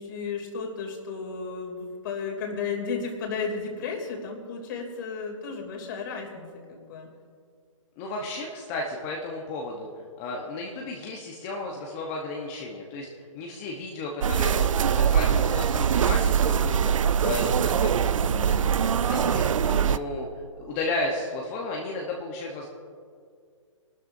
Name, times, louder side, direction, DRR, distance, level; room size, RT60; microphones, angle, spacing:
voice 1, 0.0-7.1 18.3-18.6, left 5 dB, 40° left, 1 dB, 2.9 m, -34 dB
voice 2, 8.0-9.9 10.2-13.1 13.3-20.3 20.6-22.7, left 2 dB, 25° left, -1 dB, 1.1 m, -33 dB
sound 1, 14.2-20.0, right 8 dB, 75° right, 0.4 m, -23 dB
24.0 x 12.5 x 2.7 m, 2.1 s
hypercardioid pair, 155°, 17 cm